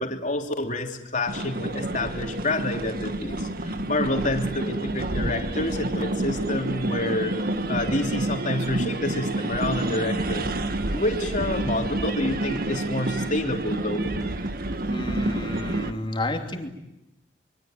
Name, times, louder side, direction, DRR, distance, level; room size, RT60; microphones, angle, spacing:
voice 1, 0.0-7.4 7.7-10.5 10.9-14.1, left 1 dB, 45° left, 4 dB, 3.3 m, -28 dB
sound 1, 1.3-15.9, right 1 dB, 55° right, 1.7 m, -29 dB
sound 2, 11.9-15.2, right 1 dB, 25° right, 3.4 m, -44 dB
voice 2, 14.8-16.7, left 1 dB, 30° left, 4 dB, 2.9 m, -31 dB
25.5 x 23.5 x 9.2 m, 0.89 s
head